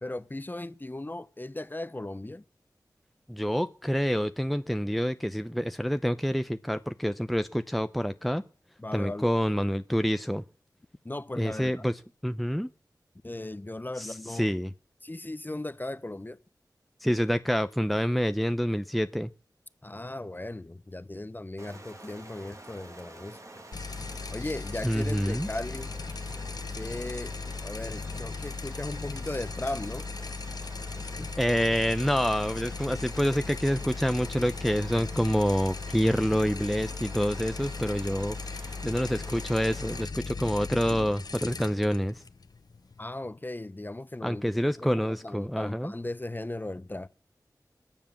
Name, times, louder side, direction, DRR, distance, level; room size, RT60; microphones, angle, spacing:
voice 1, 0.0-2.4 8.8-9.3 11.0-11.9 13.2-14.5 15.0-16.4 19.8-23.4 24.3-25.9 26.7-27.3 27.6-30.1 31.2-31.3 43.0-47.1, left 2 dB, 25° left, 0.9 m, -37 dB
voice 2, 3.3-8.4 8.9-10.4 11.4-11.9 12.2-12.7 14.0-14.7 17.0-19.3 24.8-25.5 31.4-42.2 44.2-45.9, equal, ahead, 0.7 m, -27 dB
Stream, 21.6-40.0, right 2 dB, 45° right, 2.4 m, -48 dB
sound 1, 23.7-43.0, left 4 dB, 65° left, 0.9 m, -38 dB
21.5 x 7.4 x 7.2 m
cardioid pair, 45°, 7 cm